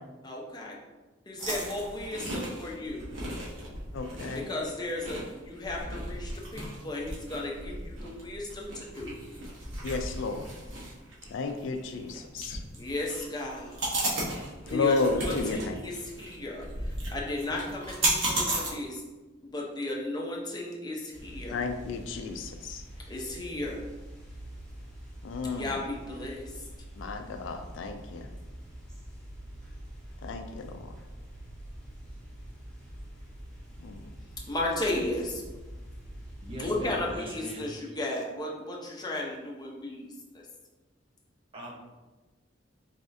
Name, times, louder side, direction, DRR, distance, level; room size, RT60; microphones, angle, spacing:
voice 1, 0.2-0.8 1.3-3.1 4.3-9.1 12.7-14.1 14.6-19.0 19.4-21.6 23.1-23.9 25.4-26.6 34.5-35.4 36.6-40.4, left 1 dB, 20° left, -2 dB, 0.7 m, -35 dB
sound 1, 1.4-18.7, right 1 dB, 70° right, 1.2 m, -35 dB
voice 2, 3.9-4.5 9.8-10.5 11.3-12.6 14.7-15.8 21.5-22.8 25.2-25.8 27.0-28.3 30.2-30.8 33.8-34.0, left 4 dB, 70° left, 6 dB, 0.4 m, -32 dB
sound 2, 21.1-37.1, right 1 dB, 5° left, 1.4 m, -45 dB
voice 3, 36.4-37.7 41.5-41.7, equal, 30° right, -2 dB, 0.8 m, -40 dB
4.1 x 3.5 x 2.6 m, 1.2 s
head